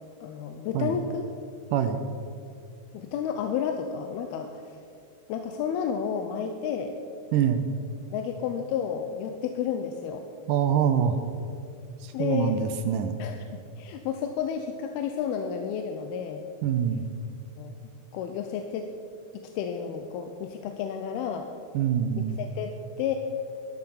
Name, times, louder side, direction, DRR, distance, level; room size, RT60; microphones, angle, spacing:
voice 1, 0.2-1.2 2.9-4.7 5.3-6.9 8.1-10.2 12.1-12.6 13.2-13.4 13.8-16.4 17.6-17.8 18.1-18.9 19.3-21.5 22.1-23.2, left 7 dB, 90° left, 5 dB, 2.7 m, -31 dB
voice 2, 1.7-2.0 7.3-7.6 10.5-11.2 12.0-13.2 16.6-17.0 21.7-22.4, right 9 dB, 80° right, 8 dB, 2.0 m, -25 dB
13.0 x 12.0 x 5.8 m, 2.5 s
omnidirectional pair, 4.4 m